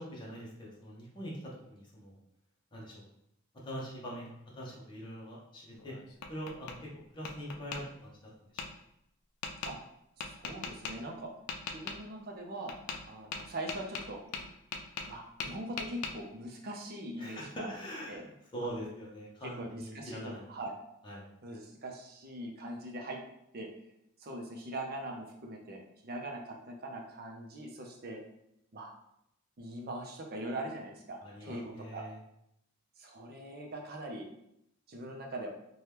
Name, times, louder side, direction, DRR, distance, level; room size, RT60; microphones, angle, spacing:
voice 1, 0.0-1.4 1.7-2.2 2.7-3.1 3.6-5.9 6.3-8.1 17.2-20.4 21.0-21.3 31.2-32.2, equal, 20° left, -5 dB, 0.7 m, -43 dB
Tap, 5.7-6.8 7.2-7.8 8.6-8.7 9.4-9.7 10.2-10.9 11.5-12.0 12.7-13.0 13.3-15.1 15.4-16.1, left 5 dB, 80° left, 0.4 m, -39 dB
voice 2, 10.3-11.3 11.7-12.7 13.1-14.2 15.1-17.7 18.1-18.2 18.6-18.7 19.4-20.7 21.4-23.2 23.5-23.7 24.2-28.2 28.7-28.9 29.6-32.0 33.0-34.3 34.9-35.5, right 1 dB, 45° right, 1 dB, 0.6 m, -41 dB
2.8 x 2.2 x 3.3 m, 0.78 s
head